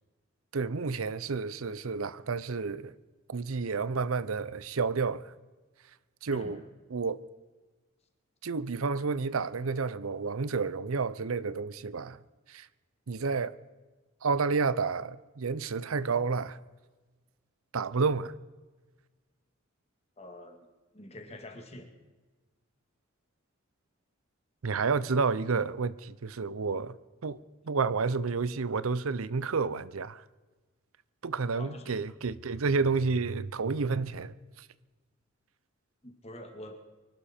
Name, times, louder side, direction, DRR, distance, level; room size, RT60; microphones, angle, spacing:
voice 1, 0.5-2.9 3.3-5.3 6.2-6.6 6.9-7.2 8.4-12.2 12.5-12.7 13.1-13.5 14.2-16.6 17.7-18.3 24.6-27.0 27.2-27.4 27.6-30.2 31.2-34.7, right 4 dB, 90° right, 0.6 m, -30 dB
voice 2, 6.3-6.7 20.2-20.7 20.9-21.9 31.6-32.1 36.0-36.8, left 1 dB, 30° left, 2.1 m, -45 dB
24.5 x 12.0 x 4.4 m
head